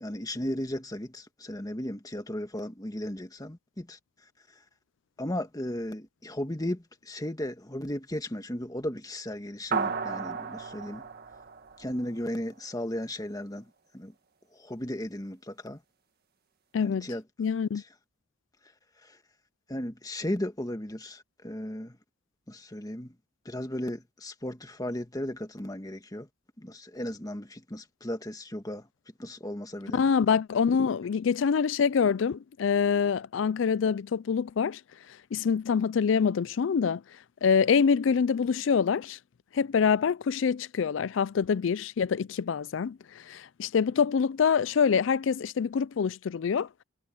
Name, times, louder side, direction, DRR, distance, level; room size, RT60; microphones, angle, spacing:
voice 1, 0.0-4.0 5.2-11.0 11.8-13.6 13.9-14.1 14.5-15.8 16.8-17.2 19.1-19.2 19.7-22.0 22.5-23.1 23.4-26.3 26.6-28.9 29.2-30.0, left 1 dB, 20° left, 1.6 m, -35 dB
sound 1, 9.7-12.4, right 5 dB, 50° right, 1.9 m, -34 dB
voice 2, 16.7-17.1 17.4-17.8 29.9-34.8 35.3-37.0 37.4-39.2 39.5-46.7, left 6 dB, 65° left, 0.4 m, -25 dB
head